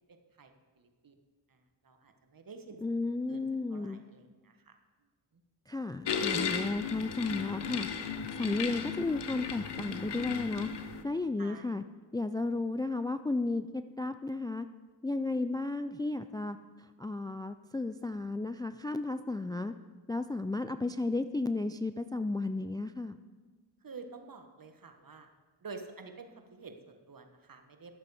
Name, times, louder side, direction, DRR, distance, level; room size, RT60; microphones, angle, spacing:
voice 1, 0.1-1.1 1.5-2.8 3.3-3.4 3.7-4.8 5.3-5.4 11.4-11.7 23.8-25.3 25.6-27.9, right 4 dB, 50° right, 6 dB, 1.4 m, -49 dB
voice 2, 2.8-4.0 5.7-7.9 8.2-10.7 11.0-11.8 12.1-14.7 15.0-19.7 20.1-23.2, left 2 dB, 10° left, 10 dB, 0.4 m, -33 dB
sound 1, 6.1-11.0, left 6 dB, 65° left, 1.0 m, -35 dB
12.0 x 7.6 x 4.9 m, 1.3 s
cardioid pair, 45°, 44 cm